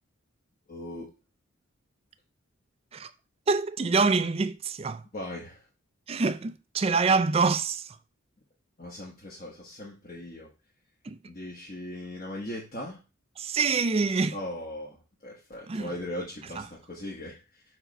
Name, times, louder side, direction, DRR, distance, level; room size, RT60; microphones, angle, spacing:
voice 1, 0.7-1.1 5.1-5.6 8.8-10.5 11.3-13.0 14.3-17.6, left 1 dB, 40° left, 1.3 m, -39 dB
voice 2, 3.5-5.0 6.1-8.0 11.0-11.2 13.4-14.3 15.7-15.9, right 4 dB, 30° right, 0.4 m, -25 dB
5.1 x 4.8 x 4.5 m
head